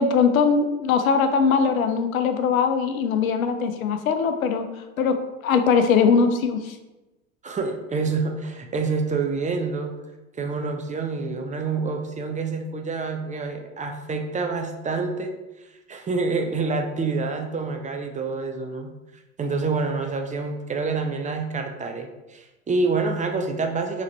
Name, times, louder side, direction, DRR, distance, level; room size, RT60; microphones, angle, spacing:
voice 1, 0.0-4.7 5.0-6.8, left 5 dB, 85° left, 8 dB, 0.6 m, -21 dB
voice 2, 7.4-10.0 10.3-15.3 15.9-18.9 19.4-24.0, right 4 dB, 20° right, 4 dB, 0.5 m, -27 dB
4.1 x 3.1 x 4.1 m, 1.1 s
hypercardioid pair, 85°, 40 cm